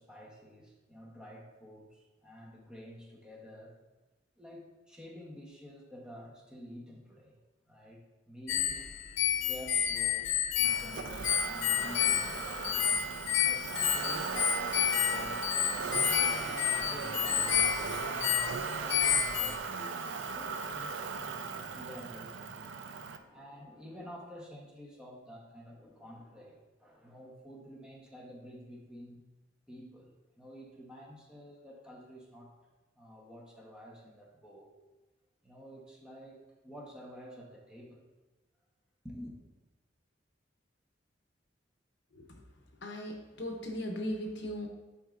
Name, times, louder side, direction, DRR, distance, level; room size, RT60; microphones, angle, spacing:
voice 1, 0.0-3.8 4.4-7.4 7.7-8.8 9.4-12.9 13.4-18.4 18.7-22.7 23.1-29.2 29.7-32.5 33.0-34.7 35.4-38.0 39.0-39.4, equal, 5° right, -3 dB, 1.0 m, -49 dB
sound 1, 8.5-19.6, left 10 dB, 80° left, 0.5 m, -30 dB
Motor vehicle (road), 10.6-23.2, right 5 dB, 75° right, 0.5 m, -37 dB
voice 2, 42.8-44.7, equal, 65° left, 2 dB, 0.9 m, -37 dB
10.5 x 4.4 x 2.5 m, 1.2 s
head